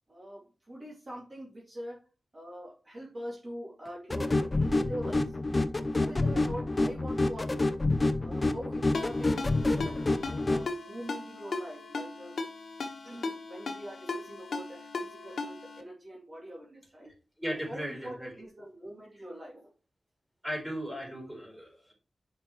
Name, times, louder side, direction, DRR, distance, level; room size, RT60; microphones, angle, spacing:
voice 1, 0.1-2.0 2.3-5.4 5.9-7.8 8.2-10.0 10.4-12.3 13.0-17.1 17.5-19.7, equal, 30° right, -4 dB, 2.4 m, -43 dB
sound 1, 4.1-10.7, left 2 dB, 30° left, 0.6 m, -28 dB
Ringtone, 8.9-15.8, left 3 dB, 70° left, 1.3 m, -38 dB
voice 2, 17.4-18.3 20.4-21.9, equal, 5° right, -1 dB, 4.0 m, -37 dB
10.5 x 5.4 x 3.1 m, 0.35 s
wide cardioid pair, 125°, 0 cm